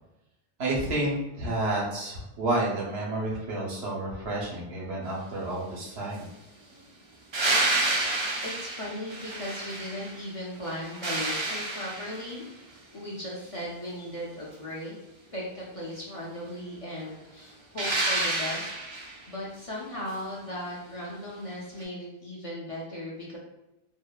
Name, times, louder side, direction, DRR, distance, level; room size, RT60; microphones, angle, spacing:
voice 1, 0.6-6.3, right 1 dB, 85° right, -3 dB, 1.0 m, -30 dB
sound 1, 7.3-10.2 10.6-12.4 17.8-19.2 21.8-21.9, right 2 dB, 45° right, 0.3 m, -29 dB
voice 2, 8.4-12.4 12.9-15.0 15.3-23.4, left 1 dB, 45° left, -5 dB, 0.5 m, -37 dB
2.8 x 2.1 x 2.2 m, 0.95 s
omnidirectional pair, 1.0 m